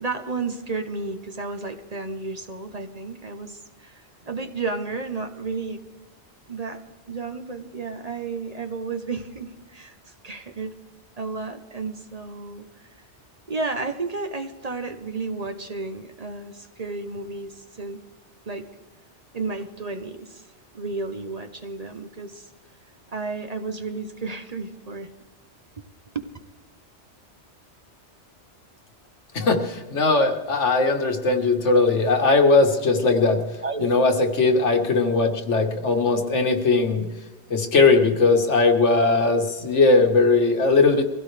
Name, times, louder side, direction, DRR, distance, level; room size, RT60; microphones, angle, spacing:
voice 1, 0.0-5.8 6.5-6.8 7.1-10.8 11.2-12.9 13.5-18.0 18.5-18.7 19.3-20.5 20.7-22.5 23.1-25.1 26.1-26.2 33.6-34.5, right 3 dB, 35° right, 7 dB, 0.9 m, -32 dB
voice 2, 29.3-33.4 33.8-37.1 37.5-41.0, left 3 dB, 85° left, 4 dB, 1.8 m, -19 dB
23.5 x 16.0 x 3.3 m, 1.2 s
omnidirectional pair, 1.2 m